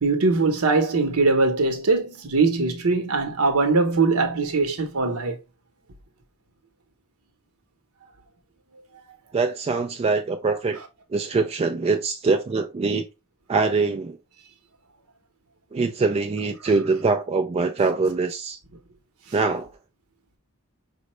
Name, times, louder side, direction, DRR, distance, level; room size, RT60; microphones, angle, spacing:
voice 1, 0.0-5.4, right 3 dB, 70° right, 0.9 m, -21 dB
voice 2, 9.3-10.8 11.1-13.0 13.5-14.2 15.7-18.6 19.3-19.7, right 4 dB, 25° right, 0.3 m, -23 dB
5.0 x 2.1 x 3.0 m
head